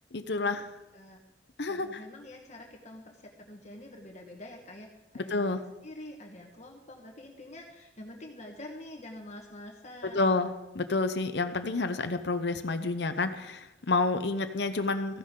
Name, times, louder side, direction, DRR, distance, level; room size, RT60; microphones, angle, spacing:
voice 1, 0.1-0.7 1.6-2.0 5.3-5.6 10.0-10.5 10.7-15.2, left 3 dB, 70° left, 9 dB, 0.8 m, -29 dB
voice 2, 1.7-4.9 5.1-10.5, left 1 dB, 40° left, 1 dB, 1.5 m, -46 dB
16.0 x 14.5 x 3.8 m, 0.96 s
head